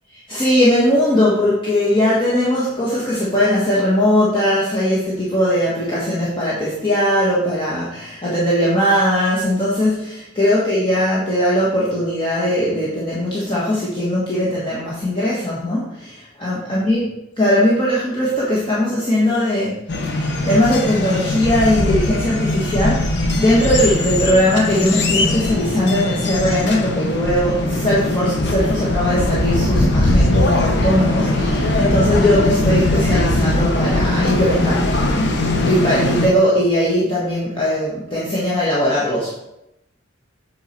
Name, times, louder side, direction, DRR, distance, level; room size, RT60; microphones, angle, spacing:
voice 1, 0.3-17.1 17.4-19.8 20.0-35.4 35.7-39.3, left 1 dB, 25° left, -7 dB, 1.5 m, -19 dB
sound 1, 19.9-36.3, left 1 dB, 60° left, 1.0 m, -20 dB
8.3 x 4.7 x 4.5 m, 0.87 s
head